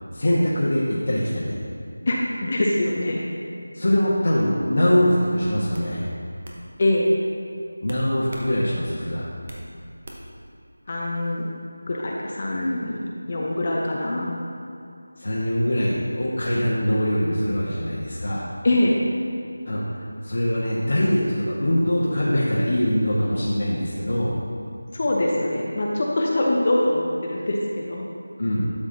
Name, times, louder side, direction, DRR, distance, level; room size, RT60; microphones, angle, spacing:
voice 1, 0.1-1.6 3.7-6.0 7.8-9.3 15.2-18.5 19.6-24.4 28.4-28.7, equal, 60° left, -8 dB, 1.3 m, -23 dB
voice 2, 2.1-3.3 6.8-7.1 10.9-11.4 11.9-14.4 18.6-19.0 24.9-28.1, left 1 dB, 35° left, -3 dB, 0.8 m, -23 dB
sound 1, 4.9-5.2 5.7-5.9 6.4-6.6 7.9-8.5 8.9-9.7 10.0-10.4, right 1 dB, 40° right, 1.0 m, -41 dB
12.0 x 6.1 x 2.8 m, 2.6 s
figure-of-eight pair, 170°, 0 cm